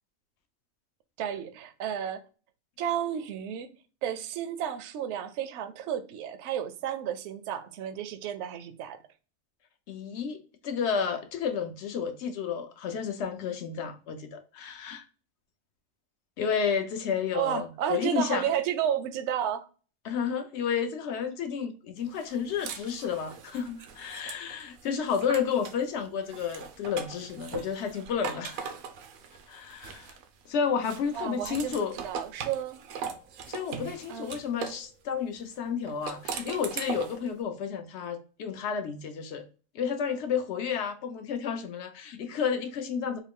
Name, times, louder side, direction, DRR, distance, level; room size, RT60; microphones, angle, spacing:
voice 1, 1.2-2.3 2.8-3.7 4.0-9.0 17.3-19.6 31.1-31.8 32.0-32.8 34.1-34.3, right 9 dB, 65° right, 0.7 m, -32 dB
voice 2, 9.9-15.0 16.4-18.5 20.0-28.7 29.5-30.2 30.5-32.0 33.5-39.4 39.7-43.2, left 7 dB, 65° left, 0.8 m, -31 dB
sound 1, 22.2-25.8 26.2-30.4 30.8-34.8 35.9-37.3, right 6 dB, 90° right, 1.0 m, -40 dB
3.8 x 2.3 x 3.5 m
omnidirectional pair, 1.4 m